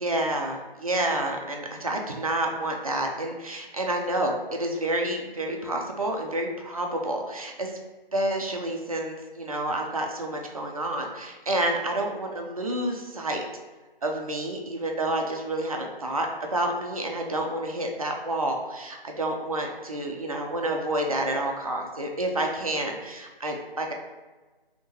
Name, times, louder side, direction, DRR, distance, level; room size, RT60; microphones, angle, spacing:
voice 1, 0.0-7.7 8.1-13.4 14.0-23.9, right 1 dB, 40° right, 1 dB, 0.5 m, -29 dB
5.1 x 2.9 x 3.0 m, 1.2 s
figure-of-eight pair, 160°, 29 cm